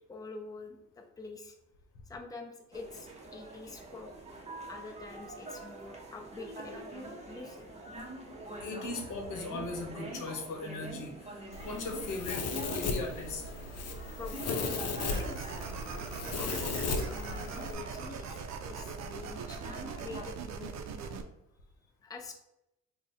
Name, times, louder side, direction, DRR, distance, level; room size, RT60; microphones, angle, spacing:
voice 1, 0.1-1.6 2.1-4.1 4.7-7.7 14.1-15.6 16.2-20.8 22.0-22.3, left 4 dB, 10° left, 3 dB, 0.5 m, -46 dB
sound 1, 2.7-20.3, right 1 dB, 20° right, 0.7 m, -45 dB
voice 2, 8.6-12.5 12.7-13.5, left 3 dB, 80° left, 3 dB, 0.8 m, -38 dB
Domestic sounds home sounds, 11.5-17.7, left 3 dB, 55° left, 0.6 m, -36 dB
sound 2, 15.0-21.2, right 5 dB, 65° right, 0.5 m, -41 dB
3.5 x 2.1 x 4.0 m, 0.85 s
cardioid pair, 90°, 30 cm